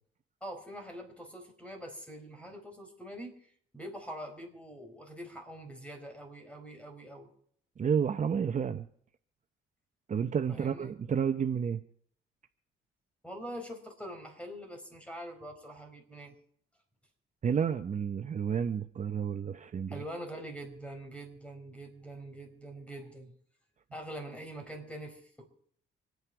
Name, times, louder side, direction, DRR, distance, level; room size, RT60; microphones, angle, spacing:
voice 1, 0.4-7.3 10.5-10.9 13.2-16.3 19.9-23.3 23.9-25.5, equal, 5° left, 4 dB, 4.6 m, -44 dB
voice 2, 7.8-8.9 10.1-11.8 17.4-20.0, right 7 dB, 40° right, 9 dB, 0.8 m, -30 dB
26.0 x 9.5 x 4.7 m, 0.63 s
cardioid pair, 90°, 20 cm